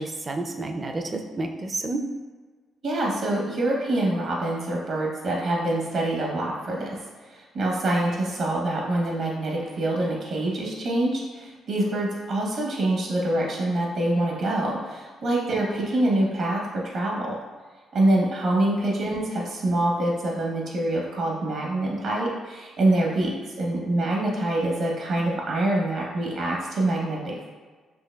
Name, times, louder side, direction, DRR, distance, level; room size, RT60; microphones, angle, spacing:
voice 1, 0.0-2.0, right 2 dB, 30° right, 5 dB, 0.4 m, -30 dB
voice 2, 2.8-7.0 7.3-17.4 17.9-27.5, right 1 dB, 65° right, -2 dB, 0.9 m, -25 dB
4.5 x 2.9 x 2.2 m, 1.4 s
cardioid pair, 90°, 0 cm